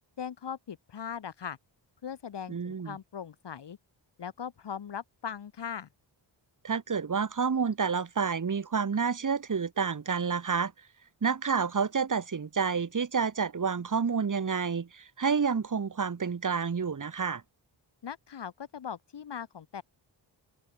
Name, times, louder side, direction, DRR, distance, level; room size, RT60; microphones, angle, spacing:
voice 1, 0.2-1.6 2.0-3.8 4.2-5.9 18.0-19.8, left 8 dB, 65° left, 1.9 m, -39 dB
voice 2, 2.5-3.0 6.6-10.7 11.2-17.4, right 6 dB, 40° right, 2.6 m, -29 dB
open air
wide cardioid pair, 150°, 45 cm